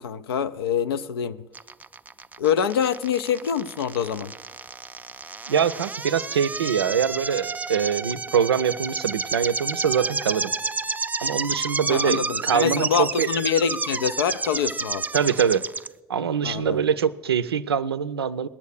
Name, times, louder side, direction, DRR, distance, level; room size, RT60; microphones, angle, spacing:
voice 1, 0.0-1.4 2.4-4.3 11.9-15.1 16.4-16.8, left 8 dB, 75° left, 0.4 m, -25 dB
sound 1, 1.5-15.9, right 4 dB, 15° right, 0.4 m, -30 dB
voice 2, 5.5-10.5 11.2-13.3 15.1-15.7 16.1-18.5, right 7 dB, 85° right, 0.4 m, -24 dB
19.0 x 7.2 x 6.4 m
figure-of-eight pair, 60°, 13 cm